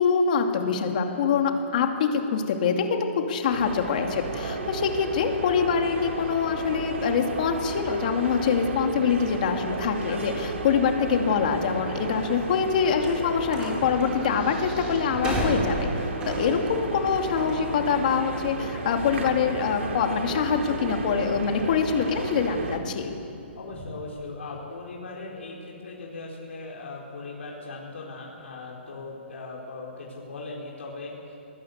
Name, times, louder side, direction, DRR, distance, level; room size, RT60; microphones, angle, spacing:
voice 1, 0.0-23.1, left 6 dB, 40° left, 4 dB, 2.5 m, -25 dB
sound 1, 3.5-22.8, right 3 dB, 90° right, 3.1 m, -33 dB
voice 2, 10.1-10.4 16.4-16.5 23.0-23.1 23.5-31.4, left 3 dB, 75° left, -2 dB, 4.5 m, -39 dB
sound 2, 11.9-23.9, right 1 dB, 15° right, 3.8 m, -36 dB
23.0 x 19.5 x 8.1 m, 2.6 s
hypercardioid pair, 170°, 7 cm